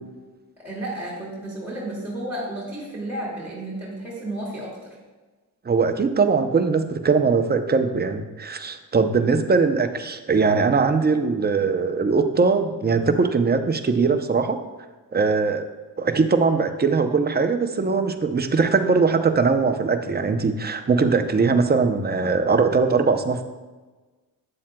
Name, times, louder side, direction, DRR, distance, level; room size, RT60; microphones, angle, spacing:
voice 1, 0.6-5.0, right 1 dB, 5° right, -7 dB, 2.3 m, -32 dB
voice 2, 5.7-14.6 15.1-15.6 16.0-23.4, right 4 dB, 25° right, 7 dB, 0.6 m, -21 dB
8.6 x 7.3 x 2.2 m, 1.3 s
cardioid pair, 70°, 39 cm